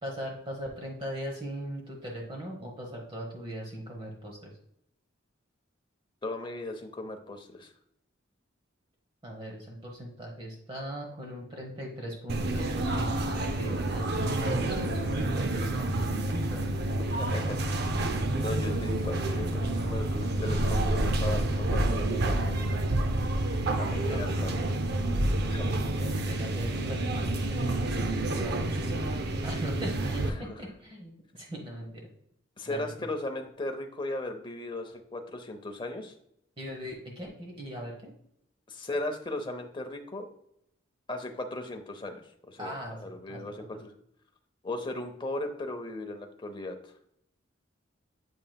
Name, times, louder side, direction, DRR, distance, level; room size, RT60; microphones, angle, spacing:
voice 1, 0.0-4.5 9.2-16.7 24.1-24.7 25.4-27.8 28.3-29.1 29.4-32.0 32.7-32.8 36.6-38.1 42.6-43.4, equal, 25° right, 0 dB, 1.0 m, -39 dB
voice 2, 6.2-7.7 17.1-17.7 18.4-22.7 23.7-24.7 25.5-25.7 30.4-30.6 32.6-36.1 38.7-40.3 41.1-43.9 44.6-46.8, left 1 dB, 25° left, 4 dB, 0.7 m, -37 dB
sound 1, 12.3-30.3, right 1 dB, 55° right, 0.6 m, -29 dB
7.7 x 5.5 x 2.3 m, 0.72 s
head